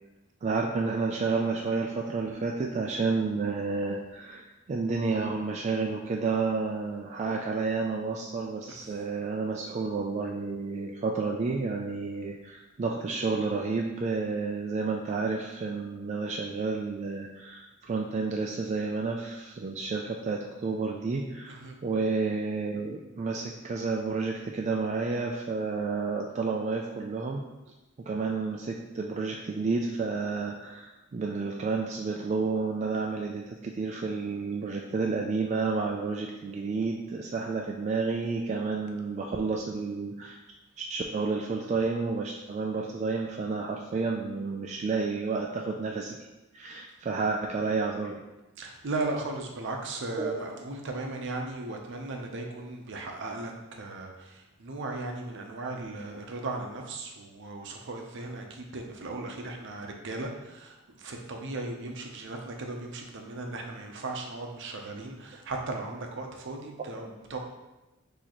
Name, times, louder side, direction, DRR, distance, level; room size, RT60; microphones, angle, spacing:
voice 1, 0.4-27.5 28.1-40.4 40.8-46.3 46.5-48.2 50.2-50.3, right 4 dB, 35° right, 0 dB, 0.3 m, -30 dB
voice 2, 8.7-9.0 21.5-21.7 48.6-67.4, right 2 dB, 60° right, 2 dB, 0.6 m, -37 dB
6.2 x 2.8 x 3.0 m, 1.0 s
head